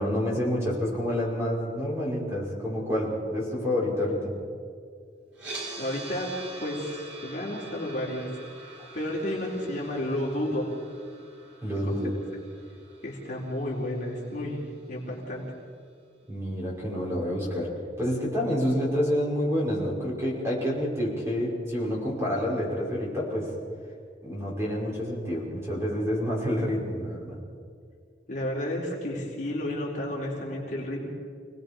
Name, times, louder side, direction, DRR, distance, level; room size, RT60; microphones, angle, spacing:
voice 1, 0.0-4.3 11.6-12.1 16.3-23.5 24.2-27.4, equal, 15° right, -5 dB, 5.6 m, -28 dB
sound 1, 5.3-15.4, right 2 dB, 90° right, 6.5 m, -45 dB
voice 2, 5.8-6.3 6.6-8.3 8.9-10.7 11.8-11.9 13.0-15.5 28.3-31.1, left 1 dB, 45° left, -4 dB, 4.2 m, -31 dB
28.0 x 19.0 x 5.3 m, 2.1 s
head